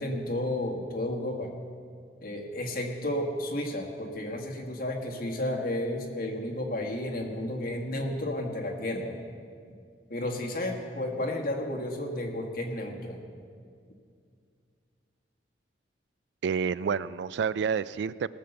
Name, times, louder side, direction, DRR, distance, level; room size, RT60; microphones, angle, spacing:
voice 1, 0.0-1.5 2.2-9.2 10.1-13.2, left 1 dB, 55° left, 1 dB, 1.6 m, -32 dB
voice 2, 16.4-18.3, right 6 dB, 75° right, 18 dB, 0.3 m, -29 dB
18.0 x 6.9 x 6.7 m, 2.2 s
head